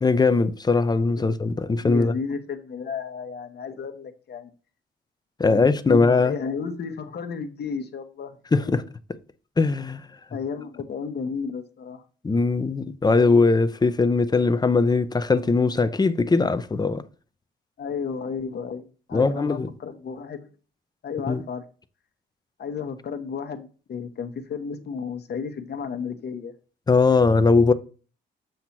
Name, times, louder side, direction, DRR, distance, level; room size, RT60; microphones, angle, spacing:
voice 1, 0.0-2.1 5.4-6.3 8.5-8.8 9.6-10.0 12.2-17.0 19.1-19.7 21.3-21.4 26.9-27.7, left 3 dB, 20° left, 0.5 m, -20 dB
voice 2, 1.8-4.5 5.5-8.4 8.6-8.9 10.3-12.0 17.8-18.8 19.1-20.5 21.0-21.6 22.6-26.5, left 6 dB, 55° left, 1.1 m, -33 dB
7.8 x 2.9 x 5.9 m
cardioid pair, 90°, 20 cm